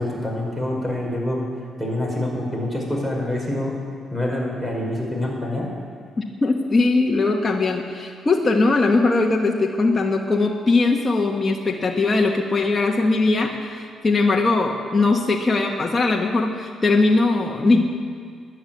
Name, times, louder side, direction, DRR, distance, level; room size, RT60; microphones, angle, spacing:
voice 1, 0.0-1.4 1.8-3.7 4.1-5.7, left 1 dB, 10° right, -1 dB, 5.4 m, -26 dB
voice 2, 6.2-17.9, left 3 dB, 25° left, 0 dB, 1.4 m, -20 dB
13.5 x 11.0 x 9.0 m, 2.1 s
cardioid pair, 90°, 0 cm